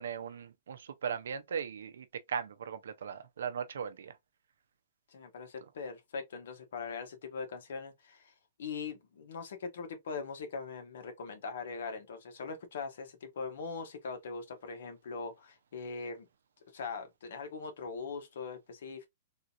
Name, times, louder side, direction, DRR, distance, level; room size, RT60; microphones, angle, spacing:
voice 1, 0.0-4.1, right 7 dB, 90° right, 0.5 m, -38 dB
voice 2, 5.1-8.3 8.6-16.3 16.7-19.1, left 4 dB, 75° left, 1.2 m, -41 dB
3.6 x 2.5 x 2.8 m
hypercardioid pair, 165°, 0 cm